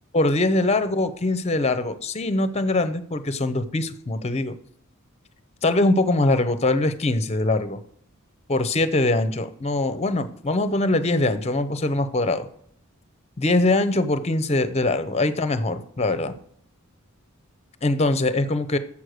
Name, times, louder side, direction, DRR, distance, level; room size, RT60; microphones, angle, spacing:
voice 1, 0.1-4.6 5.6-7.8 8.5-12.5 13.4-16.3 17.8-18.8, left 2 dB, 30° left, 12 dB, 0.6 m, -22 dB
7.2 x 6.4 x 6.4 m, 0.63 s
head